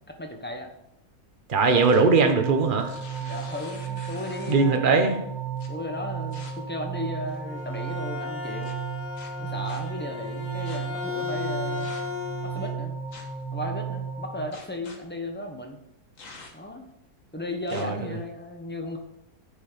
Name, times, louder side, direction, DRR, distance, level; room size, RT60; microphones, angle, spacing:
voice 1, 0.1-0.7 3.2-5.0 5.7-8.7 9.4-11.9 12.4-13.0 13.5-15.8 16.5-16.9 17.3-19.0, left 1 dB, 10° left, 3 dB, 1.0 m, -35 dB
sound 1, 1.5-2.1 2.7-4.7 5.6-5.7 6.3-6.5 7.2-7.6 8.6-8.7 9.1-9.8 10.7-10.8 11.8-12.2 13.1-13.4 14.5-15.0 16.2-16.7 17.7-17.8, left 3 dB, 60° left, 1.8 m, -46 dB
voice 2, 1.5-2.9 4.5-5.2 17.7-18.0, right 4 dB, 35° right, 5 dB, 1.2 m, -20 dB
sound 2, 1.7-14.4, right 6 dB, 15° right, 1.7 m, -34 dB
Bowed string instrument, 7.3-12.8, left 5 dB, 30° left, 1.4 m, -35 dB
9.7 x 6.9 x 5.1 m, 0.81 s
omnidirectional pair, 1.6 m